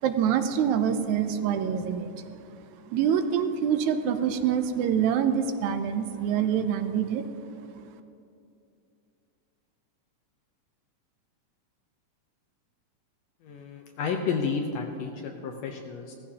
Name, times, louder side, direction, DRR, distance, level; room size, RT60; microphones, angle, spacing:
voice 1, 0.0-2.3 2.9-7.3, right 8 dB, 75° right, 8 dB, 1.9 m, -26 dB
voice 2, 13.4-16.2, left 5 dB, 70° left, 3 dB, 1.6 m, -31 dB
16.5 x 14.5 x 2.9 m, 2.5 s
omnidirectional pair, 3.6 m